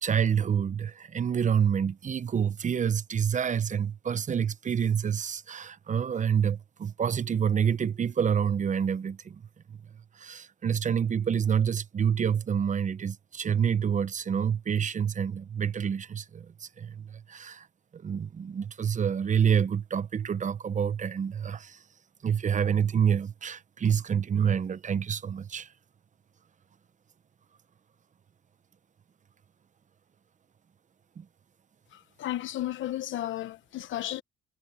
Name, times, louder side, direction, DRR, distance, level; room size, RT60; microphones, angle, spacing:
voice 1, 0.0-9.4 9.7-9.8 10.2-17.7 17.9-21.8 22.2-25.7 31.2-31.3, right 7 dB, 40° right, 0.8 m, -27 dB
voice 2, 31.9-34.2, left 13 dB, 75° left, 1.0 m, -34 dB
cardioid pair, 90°, 20 cm